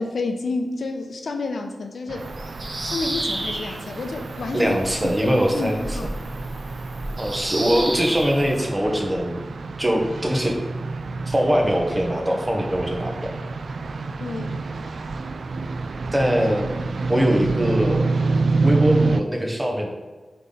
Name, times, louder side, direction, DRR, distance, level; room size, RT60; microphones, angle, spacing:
voice 1, 0.0-2.3 2.8-4.7 5.0-6.2 14.2-14.7, left 3 dB, 85° left, 5 dB, 0.7 m, -30 dB
sound 1, 2.1-19.2, right 3 dB, 75° right, 0.3 m, -28 dB
Bird vocalization bird call bird song, 2.2-8.6, right 1 dB, 40° right, 1.1 m, -32 dB
voice 2, 4.5-6.0 7.2-9.4 9.8-10.6 11.3-13.1 16.1-16.7 17.1-18.1 18.6-19.9, equal, 20° right, 1 dB, 1.1 m, -22 dB
7.8 x 3.9 x 3.9 m, 1.3 s
wide cardioid pair, 115°, 0 cm